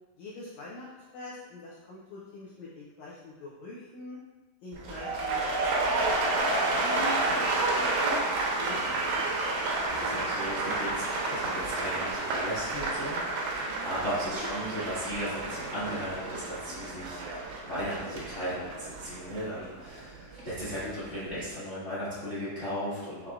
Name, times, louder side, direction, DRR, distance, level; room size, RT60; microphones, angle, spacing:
voice 1, 0.2-0.9 1.1-4.2 4.6-5.4 5.9-6.2 6.4-7.4 7.7-8.2 8.6-8.8 9.9-10.3 14.3-14.5 20.7-20.9, left 2 dB, 80° left, -6 dB, 1.7 m, -43 dB
sound 1, 4.7-20.8 21.1-21.5, right 2 dB, 80° right, 2.2 m, -30 dB
voice 2, 8.7-9.0 9.4-13.2 13.4-13.6 13.8-23.3, equal, 45° left, -11 dB, 0.9 m, -36 dB
6.0 x 3.2 x 2.3 m, 1.2 s
omnidirectional pair, 3.8 m